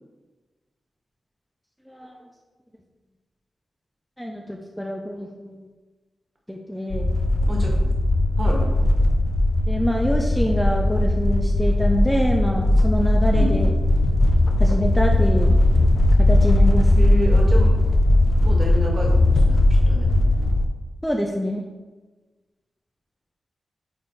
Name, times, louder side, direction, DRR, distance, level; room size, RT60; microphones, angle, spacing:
voice 1, 4.2-5.6 6.5-7.2 9.7-13.7 14.6-15.6 16.3-16.9 21.0-21.6, equal, ahead, 1 dB, 0.6 m, -25 dB
sound 1, 6.9-20.7, left 1 dB, 45° left, 0.6 m, -18 dB
voice 2, 7.4-7.9 8.4-8.8 13.3-13.7 17.0-17.7 18.4-20.2, equal, 40° right, -1 dB, 1.8 m, -29 dB
8.8 x 3.9 x 3.2 m, 1.2 s
wide cardioid pair, 95°, 0 cm